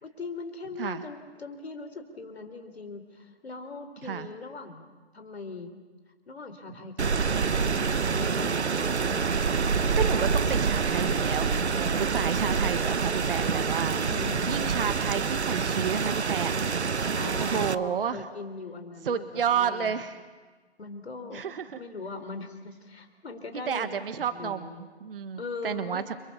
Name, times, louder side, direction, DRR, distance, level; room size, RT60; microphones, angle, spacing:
voice 1, 0.0-4.9 5.1-5.7 6.3-8.7 13.8-14.6 17.2-20.0 20.8-21.4 21.7-24.8 25.4-26.1, left 3 dB, 70° left, 7 dB, 4.0 m, -40 dB
Rain, 7.0-17.7, right 5 dB, 80° right, 1.1 m, -26 dB
voice 2, 10.0-13.9 14.5-16.6 17.4-18.2 19.0-20.1 21.3-21.8 23.7-26.0, right 7 dB, 55° right, 10 dB, 1.5 m, -31 dB
30.0 x 25.0 x 7.1 m, 1.4 s
figure-of-eight pair, 130°, 33 cm